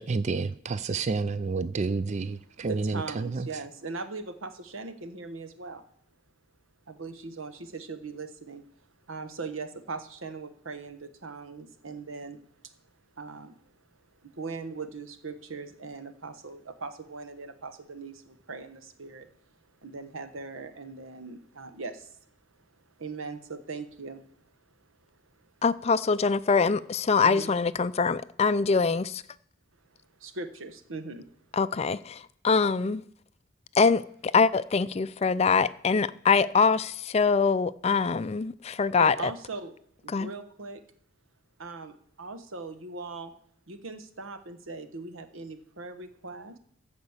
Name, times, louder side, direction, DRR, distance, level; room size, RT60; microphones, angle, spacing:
voice 1, 0.0-3.5, right 4 dB, 35° right, 0.4 m, -29 dB
voice 2, 2.7-5.8 6.9-8.6 9.1-12.4 13.2-13.5 14.2-19.3 19.8-22.2 23.0-24.3 27.2-27.5 30.2-31.3 39.0-39.7 40.0-40.8 41.6-43.3 43.7-46.6, right 3 dB, 90° right, 1.2 m, -40 dB
voice 3, 25.6-29.2 31.5-33.0 33.7-34.0 34.3-39.1 40.1-40.3, left 5 dB, 30° left, 0.4 m, -24 dB
14.5 x 5.2 x 7.1 m
head